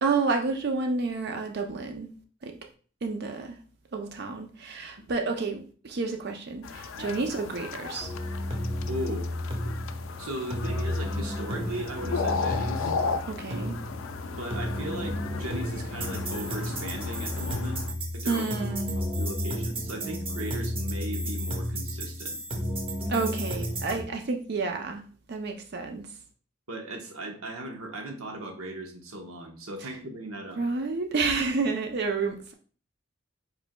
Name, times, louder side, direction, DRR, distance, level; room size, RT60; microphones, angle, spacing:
voice 1, 0.0-2.1 2.4-2.6 3.0-3.6 3.9-8.1 13.3-13.8 18.3-19.0 23.1-25.0 25.3-26.1 29.8-30.0 30.6-32.5, right 4 dB, 50° right, 0.5 m, -30 dB
sound 1, 6.6-17.9, left 4 dB, 70° left, 0.4 m, -35 dB
sound 2, 8.0-24.0, equal, 25° right, 1.0 m, -32 dB
voice 2, 8.9-9.3 10.2-12.9 14.3-17.8 18.1-18.4 19.2-22.4 26.7-30.6, right 1 dB, 85° right, 1.1 m, -37 dB
5.1 x 4.4 x 2.2 m
head